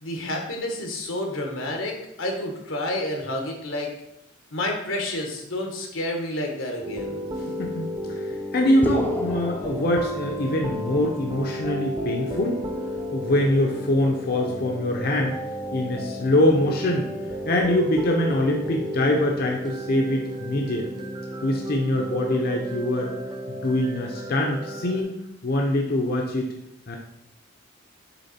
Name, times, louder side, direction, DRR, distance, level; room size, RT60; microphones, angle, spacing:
voice 1, 0.0-3.9 4.5-7.2 12.2-12.4, left 1 dB, 90° left, 1 dB, 1.4 m, -30 dB
sound 1, 6.8-25.0, equal, 20° right, 0.7 m, -33 dB
voice 2, 7.6-12.6 13.1-15.4 15.7-17.1 17.5-20.9 21.4-23.1 23.5-25.2 25.4-26.5 26.9-27.0, left 1 dB, 50° left, 0 dB, 0.7 m, -24 dB
sound 2, 8.8-10.8, right 1 dB, 10° left, 0.5 m, -31 dB
7.0 x 3.7 x 4.2 m, 0.82 s
head